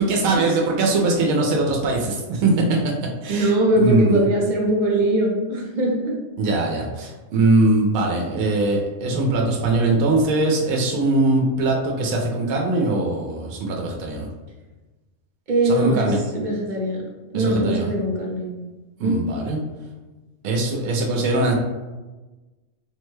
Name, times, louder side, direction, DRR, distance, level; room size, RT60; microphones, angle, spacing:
voice 1, 0.0-2.8 3.2-4.3 6.4-14.3 15.6-16.2 17.3-17.9 19.0-19.6 20.4-21.5, right 2 dB, 90° right, 0 dB, 1.0 m, -21 dB
voice 2, 3.3-6.2 15.5-17.0 17.3-18.5 19.0-19.2, right 1 dB, 50° right, -1 dB, 0.6 m, -21 dB
3.4 x 2.2 x 3.1 m, 1.2 s
omnidirectional pair, 1.4 m